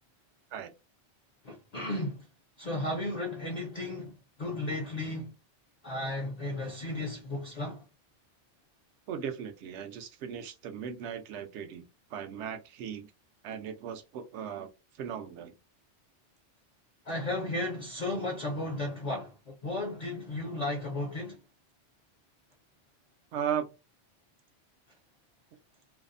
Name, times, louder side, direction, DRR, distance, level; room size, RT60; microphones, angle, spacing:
voice 1, 1.4-2.3 2.6-5.3 5.8-7.8 17.1-21.4, left 2 dB, 50° left, 0.5 m, -34 dB
voice 2, 9.1-11.8 12.1-13.1 13.4-14.7 15.0-15.5 23.3-23.7, right 8 dB, 75° right, 0.8 m, -37 dB
2.6 x 2.0 x 2.4 m
omnidirectional pair, 1.2 m